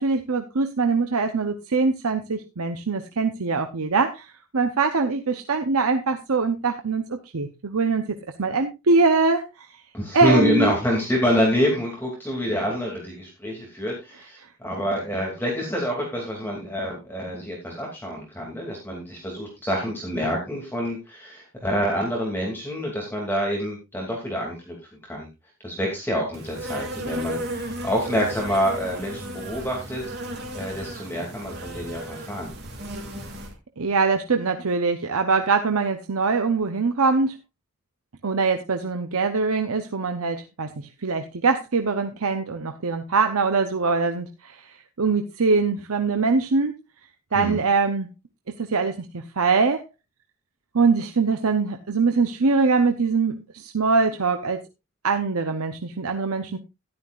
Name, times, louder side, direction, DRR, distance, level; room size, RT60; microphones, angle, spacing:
voice 1, 0.0-9.8 10.1-10.7 33.8-37.4 38.2-46.7 47.3-48.1 48.6-49.8 50.7-54.6 55.0-56.6, right 4 dB, 85° right, 7 dB, 0.9 m, -23 dB
voice 2, 9.9-24.8 25.0-25.3 25.6-30.0 30.3-32.5 47.3-47.6, equal, 10° left, -1 dB, 2.5 m, -27 dB
Insect, 26.3-33.5, right 1 dB, 50° right, 2.6 m, -34 dB
13.0 x 11.0 x 2.5 m, 0.23 s
head